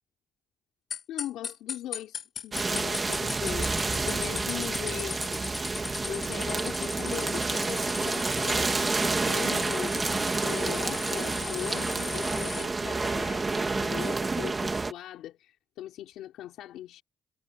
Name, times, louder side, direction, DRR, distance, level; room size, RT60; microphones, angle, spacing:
sound 1, 0.9-12.7, left 7 dB, 55° left, 0.7 m, -38 dB
voice 1, 1.1-5.4 6.1-17.0, left 13 dB, 85° left, 3.5 m, -40 dB
sound 2, 2.5-14.9, right 3 dB, 25° right, 2.4 m, -29 dB
cardioid pair, 90°, 0 cm